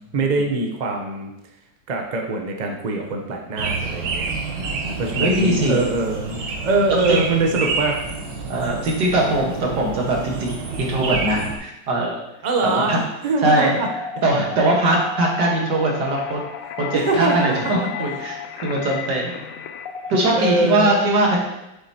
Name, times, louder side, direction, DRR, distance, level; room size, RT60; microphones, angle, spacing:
voice 1, 0.1-1.3 1.9-4.3 5.0-8.0 12.4-13.9 16.9-17.9 20.3-20.9, right 3 dB, 45° right, 2 dB, 0.5 m, -23 dB
sound 1, 3.6-11.6, right 4 dB, 90° right, 1.7 m, -28 dB
voice 2, 4.5-5.8 6.9-7.2 8.5-12.2 12.6-13.0 13.4-13.8 14.2-16.4 16.8-19.3 20.1-21.4, right 1 dB, 65° right, -1 dB, 2.0 m, -21 dB
sound 2, 13.8-20.6, left 6 dB, 80° left, 0.7 m, -33 dB
7.5 x 6.8 x 2.9 m, 0.91 s
omnidirectional pair, 2.0 m